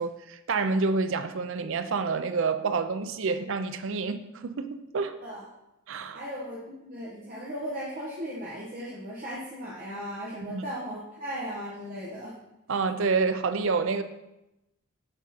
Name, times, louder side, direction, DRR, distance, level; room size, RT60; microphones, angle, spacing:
voice 1, 0.0-5.2 5.9-6.2 10.4-10.6 12.7-14.0, right 4 dB, 65° right, 0.5 m, -28 dB
voice 2, 6.1-12.3, equal, 40° right, 1.1 m, -37 dB
8.9 x 3.6 x 4.2 m
head